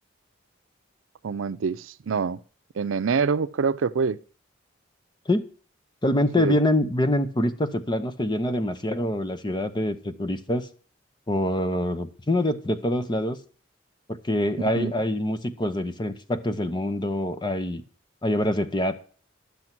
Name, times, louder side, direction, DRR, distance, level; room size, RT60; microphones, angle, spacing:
voice 1, 1.2-2.4 2.8-4.2 6.4-6.6 14.7-14.9, right 5 dB, 80° right, 0.5 m, -25 dB
voice 2, 6.0-10.7 11.3-13.4 14.1-17.8 18.2-18.9, left 1 dB, 25° left, 0.8 m, -25 dB
12.0 x 7.0 x 6.0 m
head